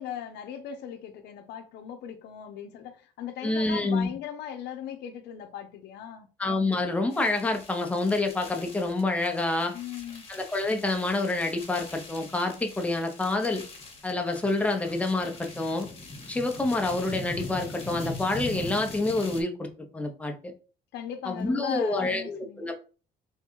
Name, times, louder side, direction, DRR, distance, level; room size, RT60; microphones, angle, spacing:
voice 1, 0.0-6.3 9.7-10.3 20.9-22.7, left 9 dB, 80° left, 0.6 m, -38 dB
voice 2, 3.4-4.1 6.4-9.8 10.3-13.6 14.0-15.9 16.3-20.5 21.2-22.8, left 2 dB, 10° left, 0.7 m, -27 dB
sound 1, 7.1-19.4, left 2 dB, 35° left, 1.2 m, -42 dB
3.5 x 2.3 x 4.4 m
cardioid pair, 110°, 17 cm